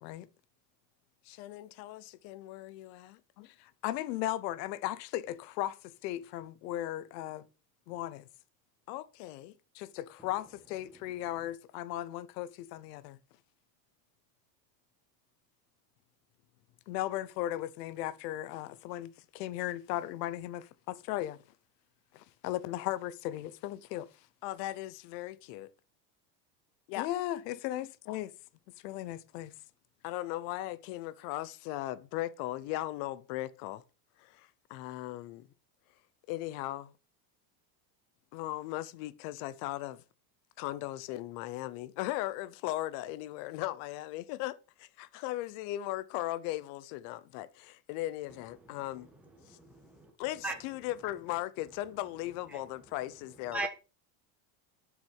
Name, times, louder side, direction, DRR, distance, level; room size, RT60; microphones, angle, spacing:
voice 1, 1.3-3.2 8.9-9.5 24.4-25.7 26.9-27.1 30.0-33.8 34.2-35.5 36.3-36.9 38.3-40.0 40.6-49.1 49.5-49.6 50.2-53.7, left 16 dB, 45° left, 0.7 m, -38 dB
voice 2, 3.4-7.4 7.9-8.3 9.7-13.2 16.9-21.4 22.1-24.1 27.0-28.3 28.8-29.5, left 14 dB, 75° left, 1.0 m, -37 dB
voice 3, 49.4-50.1 50.4-50.5 52.5-52.6 53.5-53.7, right 2 dB, 5° right, 1.3 m, -37 dB
7.4 x 6.1 x 5.4 m
cardioid pair, 170°, 49 cm